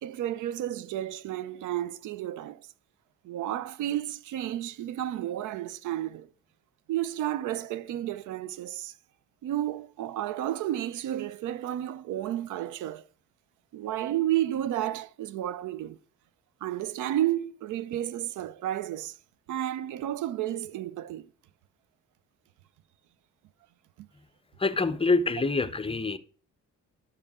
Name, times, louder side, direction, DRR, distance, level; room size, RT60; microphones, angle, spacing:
voice 1, 0.0-2.6 3.2-6.3 6.9-8.9 9.4-13.0 13.7-16.0 16.6-19.1 19.5-21.3 24.0-24.1, right 12 dB, 85° right, 0.6 m, -32 dB
voice 2, 24.6-26.2, left 3 dB, 20° left, 0.7 m, -26 dB
12.0 x 6.7 x 3.6 m
cardioid pair, 90°, 30 cm